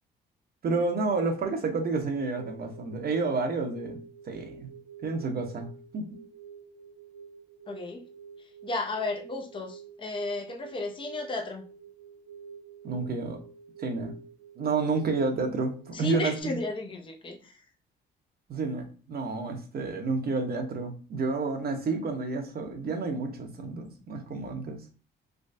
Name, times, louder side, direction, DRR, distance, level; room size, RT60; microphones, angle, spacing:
voice 1, 0.6-4.0 4.2-4.7 5.0-5.7 5.9-6.0 12.8-13.4 13.8-14.1 14.6-16.3 18.5-24.8, right 3 dB, 50° right, 0.9 m, -30 dB
sound 1, 2.0-16.4, right 7 dB, 85° right, 1.4 m, -49 dB
voice 2, 7.7-8.0 8.4-11.6 15.9-17.6, left 2 dB, 25° left, 0.7 m, -34 dB
3.5 x 3.1 x 2.6 m
cardioid pair, 90°, 20 cm